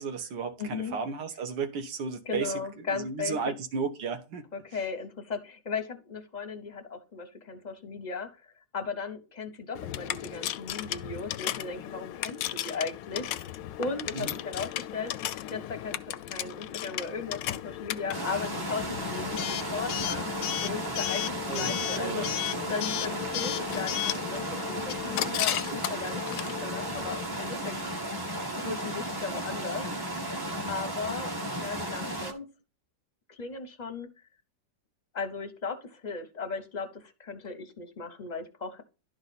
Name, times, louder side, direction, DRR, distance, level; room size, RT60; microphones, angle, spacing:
voice 1, 0.0-4.5 14.1-14.3 21.5-22.3, right 5 dB, 75° right, 1.6 m, -34 dB
voice 2, 0.6-1.0 2.2-3.5 4.5-13.5 13.8-15.1 15.5-20.3 20.6-22.3 22.7-27.7 28.6-29.9 30.7-32.5 33.3-34.1 35.1-38.8, left 4 dB, 35° left, 0.7 m, -37 dB
Coin (dropping) / Alarm, 9.7-27.2, left 13 dB, 80° left, 1.2 m, -35 dB
sound 1, 18.1-32.3, right 1 dB, 20° right, 0.7 m, -34 dB
11.5 x 4.0 x 4.0 m
omnidirectional pair, 1.9 m